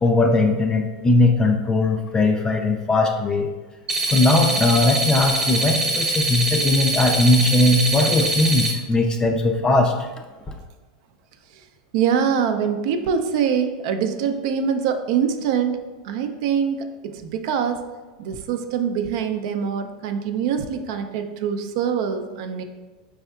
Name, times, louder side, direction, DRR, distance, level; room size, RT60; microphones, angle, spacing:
voice 1, 0.0-3.5 4.1-9.9, left 2 dB, 20° left, 4 dB, 0.3 m, -19 dB
sound 1, 3.9-8.7, right 2 dB, 20° right, 0.7 m, -23 dB
voice 2, 11.9-17.8 18.2-22.6, right 7 dB, 65° right, 7 dB, 0.4 m, -24 dB
4.4 x 3.4 x 2.3 m, 1.2 s
hypercardioid pair, 115°, 3 cm